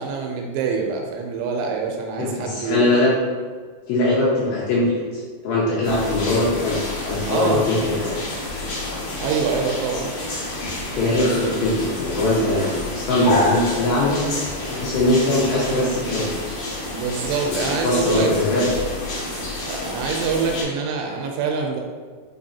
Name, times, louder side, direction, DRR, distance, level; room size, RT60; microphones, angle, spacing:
voice 1, 0.0-2.9 7.2-8.0 9.1-10.1 10.9-11.6 16.8-18.8 19.6-21.8, right 5 dB, 85° right, 2 dB, 2.9 m, -26 dB
voice 2, 2.2-3.1 3.9-5.0 5.4-8.1 10.9-14.3 14.7-16.3 17.4-18.7, left 1 dB, 80° left, -6 dB, 2.5 m, -21 dB
sound 1, 5.8-20.6, left 2 dB, 65° left, 2.1 m, -29 dB
6.9 x 2.8 x 2.7 m, 1.6 s
omnidirectional pair, 5.5 m